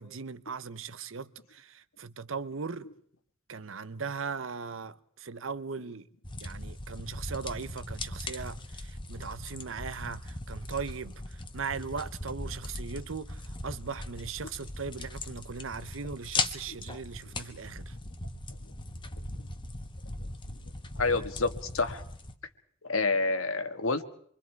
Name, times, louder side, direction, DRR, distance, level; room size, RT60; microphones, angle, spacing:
voice 1, 0.0-2.9 3.5-6.1 6.4-17.9, right 5 dB, 70° right, 0.9 m, -39 dB
sound 1, 6.2-22.4, left 2 dB, 25° left, 1.2 m, -39 dB
voice 2, 20.9-22.0 22.8-24.1, left 3 dB, 80° left, 1.6 m, -28 dB
26.5 x 24.0 x 4.6 m
head